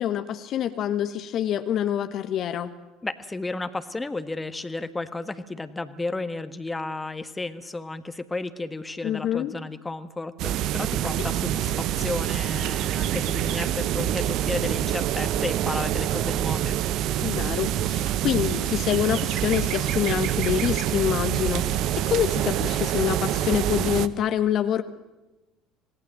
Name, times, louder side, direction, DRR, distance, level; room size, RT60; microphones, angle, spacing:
voice 1, 0.0-2.7 9.0-9.5 17.2-24.8, left 10 dB, 55° left, 9 dB, 1.4 m, -26 dB
voice 2, 3.0-16.8, left 2 dB, 15° left, 10 dB, 1.7 m, -33 dB
sound 1, 10.4-24.1, right 12 dB, 60° right, 0.9 m, -26 dB
26.5 x 18.5 x 7.8 m, 1.1 s
hypercardioid pair, 65°, 0 cm